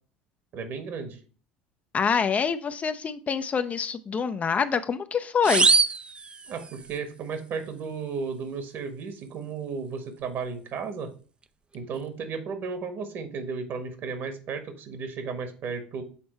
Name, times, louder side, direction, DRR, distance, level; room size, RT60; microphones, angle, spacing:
voice 1, 0.5-1.2 6.5-11.1 11.7-16.0, right 5 dB, 45° right, 9 dB, 1.5 m, -34 dB
voice 2, 1.9-5.7, left 6 dB, 30° left, 10 dB, 0.5 m, -26 dB
sound 1, 5.4-7.0, right 4 dB, 20° right, 0.5 m, -23 dB
7.4 x 4.3 x 4.4 m, 0.39 s
figure-of-eight pair, 65°, 5 cm